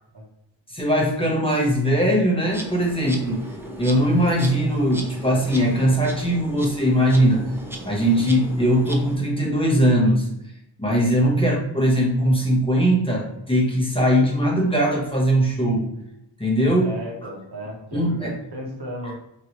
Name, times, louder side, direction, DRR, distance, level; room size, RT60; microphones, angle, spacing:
voice 1, 0.7-3.5 3.8-7.5 7.8-10.3 10.8-15.9 16.4-16.9 17.9-18.3, equal, 10° left, -4 dB, 0.8 m, -20 dB
Insect, 2.5-9.2, right 1 dB, 5° right, 0.4 m, -37 dB
voice 2, 16.8-19.1, equal, 60° right, 0 dB, 1.0 m, -35 dB
3.1 x 2.6 x 2.9 m, 0.83 s
wide cardioid pair, 85°, 46 cm